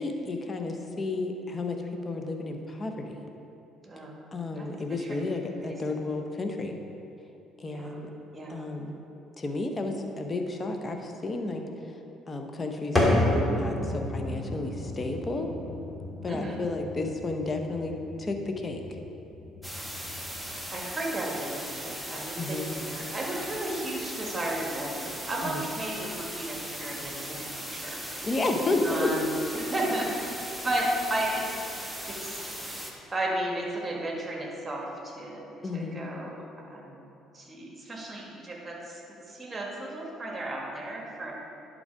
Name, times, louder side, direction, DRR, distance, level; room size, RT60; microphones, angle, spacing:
voice 1, 0.0-3.3 4.3-6.7 7.6-8.1 8.5-9.0 9.4-11.6 12.3-15.5 16.2-18.8 22.4-22.7 25.4-25.6 28.2-29.1 35.6-36.0, left 2 dB, 30° left, 4 dB, 0.9 m, -32 dB
voice 2, 3.8-4.2 4.5-4.7 5.0-5.2 5.6-6.0 7.7-8.0 8.3-8.7 16.3-16.6 20.7-27.4 27.7-28.0 28.8-30.3 30.6-31.5 32.1-32.4 33.1-35.5 35.7-37.0 37.3-39.0 39.3-41.3, right 1 dB, 25° right, -2 dB, 1.8 m, -34 dB
sound 1, 12.9-20.7, left 1 dB, 15° left, 1.8 m, -31 dB
sound 2, 19.6-32.9, equal, 5° right, 1.1 m, -38 dB
10.5 x 4.0 x 4.8 m, 2.8 s
hypercardioid pair, 55°, 0 cm